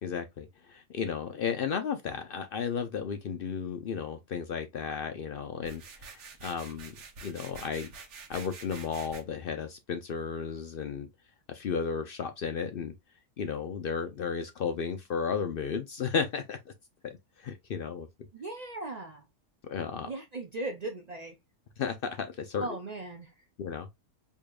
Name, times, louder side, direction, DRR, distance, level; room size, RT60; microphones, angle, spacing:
voice 1, 0.0-6.9 7.2-7.9 8.3-11.1 11.5-12.9 13.4-16.7 17.0-18.1 19.6-20.1 21.8-22.7 23.6-23.9, left 6 dB, 60° left, 0.6 m, -34 dB
sound 1, 5.6-9.2, right 4 dB, 70° right, 1.2 m, -47 dB
voice 2, 18.3-19.2 20.0-21.3 22.6-23.3, right 2 dB, 50° right, 0.5 m, -38 dB
4.8 x 2.7 x 2.3 m
omnidirectional pair, 1.3 m